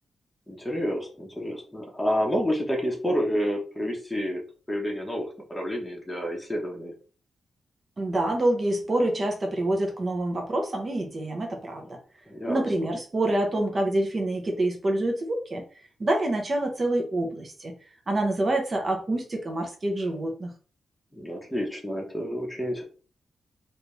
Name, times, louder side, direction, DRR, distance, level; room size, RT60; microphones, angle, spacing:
voice 1, 0.5-4.4 4.7-6.9 12.3-12.6 21.1-22.8, equal, 5° left, -1 dB, 1.1 m, -29 dB
voice 2, 8.0-11.8 12.5-15.6 16.0-17.8 18.1-20.5, right 1 dB, 35° right, 2 dB, 1.0 m, -26 dB
3.3 x 2.7 x 3.3 m, 0.38 s
cardioid pair, 105°, 0 cm